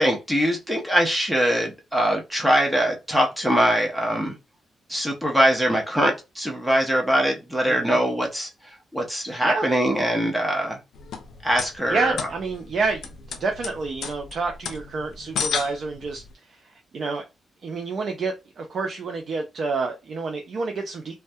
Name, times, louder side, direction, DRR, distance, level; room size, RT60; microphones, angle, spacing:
voice 1, 0.0-4.3 4.9-8.5 8.9-10.8 11.4-12.2, equal, 10° right, 0.6 m, -22 dB
voice 2, 7.7-8.0 9.4-9.7 11.9-13.1 13.4-16.2 16.9-17.2 17.6-21.1, right 4 dB, 55° right, 0.4 m, -28 dB
sound 1, 10.9-16.3, left 6 dB, 80° left, 0.4 m, -33 dB
2.2 x 2.2 x 2.6 m
cardioid pair, 110°, 0 cm